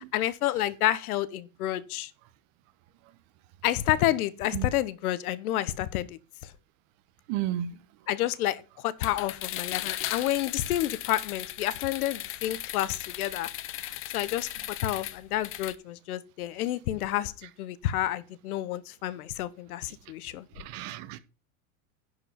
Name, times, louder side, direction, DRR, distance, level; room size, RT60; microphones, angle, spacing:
voice 1, 0.1-2.1 3.6-6.5 8.1-13.5 14.1-14.5 14.8-20.5, left 13 dB, 85° left, 1.1 m, -29 dB
voice 2, 7.3-7.7 20.6-21.2, right 12 dB, 50° right, 1.0 m, -32 dB
sound 1, 9.0-15.8, left 14 dB, 30° left, 0.7 m, -37 dB
11.0 x 4.9 x 5.8 m
supercardioid pair, 140°, 43 cm